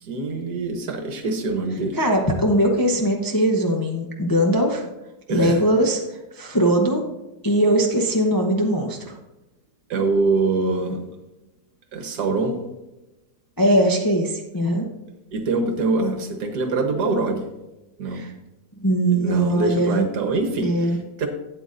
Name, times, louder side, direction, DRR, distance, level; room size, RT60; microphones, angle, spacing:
voice 1, 0.0-2.1 5.3-5.6 9.9-11.0 11.9-12.6 15.3-17.5 18.0-18.2 19.1-21.3, right 3 dB, 65° right, 4 dB, 1.7 m, -24 dB
voice 2, 1.9-4.8 5.3-6.0 6.4-7.0 7.4-9.1 13.6-14.9 18.1-18.3 18.8-20.0 20.6-21.0, right 1 dB, 20° left, 1 dB, 0.5 m, -20 dB
12.5 x 9.0 x 2.6 m, 1.0 s
omnidirectional pair, 1.9 m